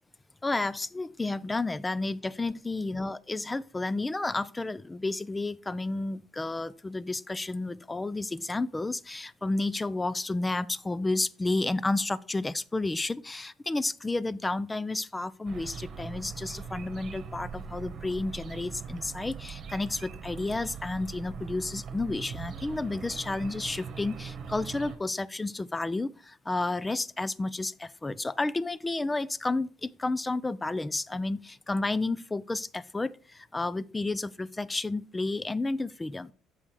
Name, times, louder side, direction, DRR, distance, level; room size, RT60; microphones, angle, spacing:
voice 1, 0.4-36.3, left 2 dB, 15° left, 0.3 m, -31 dB
sound 1, 15.5-25.0, right 6 dB, 45° right, 1.2 m, -41 dB
6.9 x 5.4 x 4.7 m
cardioid pair, 125°, 0 cm